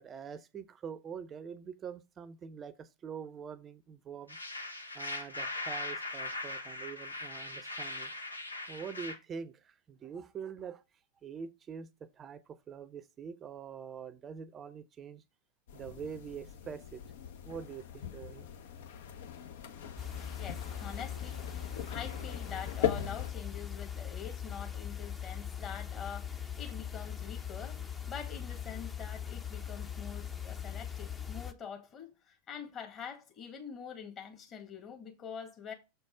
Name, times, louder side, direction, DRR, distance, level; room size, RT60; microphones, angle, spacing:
voice 1, 0.0-4.4 4.9-8.1 8.7-10.8 11.2-15.2 15.7-17.0 17.4-18.5, right 7 dB, 25° right, 0.7 m, -44 dB
sound 1, 4.3-9.2, left 2 dB, 80° left, 1.0 m, -40 dB
sound 2, 15.7-23.3, left 9 dB, 55° left, 0.8 m, -40 dB
sound 3, 20.0-31.5, left 8 dB, 15° left, 0.7 m, -40 dB
voice 2, 20.4-35.7, left 7 dB, 30° left, 1.7 m, -45 dB
6.8 x 4.2 x 4.7 m
figure-of-eight pair, 90°, 0 cm